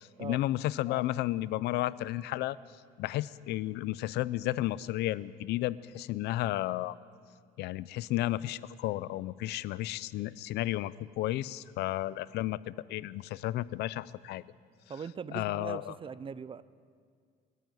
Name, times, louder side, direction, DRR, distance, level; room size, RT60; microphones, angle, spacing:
voice 1, 0.0-2.6 3.0-7.0 7.6-14.4 15.3-15.9, left 15 dB, 80° left, 18 dB, 0.6 m, -33 dB
voice 2, 14.9-16.6, right 6 dB, 30° right, 17 dB, 0.6 m, -40 dB
22.0 x 14.0 x 9.2 m, 2.1 s
cardioid pair, 110°, 17 cm